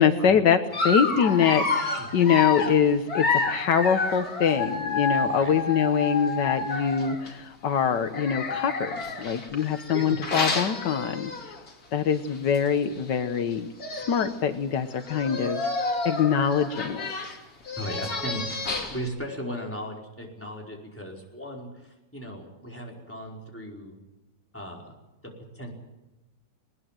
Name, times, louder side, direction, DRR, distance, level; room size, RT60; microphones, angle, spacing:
voice 1, 0.0-11.3 11.9-13.7 14.1-15.6 16.0-17.4, left 7 dB, 75° left, 8 dB, 1.7 m, -24 dB
Dog, 0.7-7.3 8.1-11.7 12.1-12.3 12.6-12.7 13.5-13.6 13.8-14.4 15.0-19.1, left 3 dB, 55° left, 3.1 m, -29 dB
voice 2, 2.0-2.3 5.3-5.5 9.9-10.2 17.8-18.4 18.9-24.0 24.5-24.8 25.5-25.7, equal, 5° left, -1 dB, 5.0 m, -36 dB
20.5 x 20.5 x 7.7 m, 0.99 s
omnidirectional pair, 1.9 m